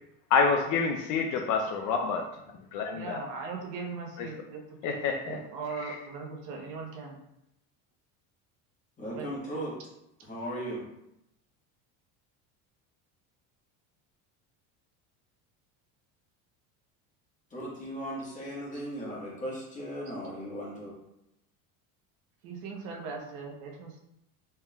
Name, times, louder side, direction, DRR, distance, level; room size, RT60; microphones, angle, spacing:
voice 1, 0.3-2.3 2.7-3.2 4.2-4.3 4.8-5.4 5.8-6.0, left 5 dB, 50° left, 3 dB, 0.5 m, -27 dB
voice 2, 2.9-5.0 5.3-7.2 9.1-9.3 22.4-24.0, right 4 dB, 60° right, 0 dB, 0.9 m, -39 dB
voice 3, 9.0-9.8 10.2-10.8 17.5-20.9, equal, 20° left, -5 dB, 1.4 m, -37 dB
4.4 x 3.5 x 2.3 m, 0.82 s
cardioid pair, 135°, 41 cm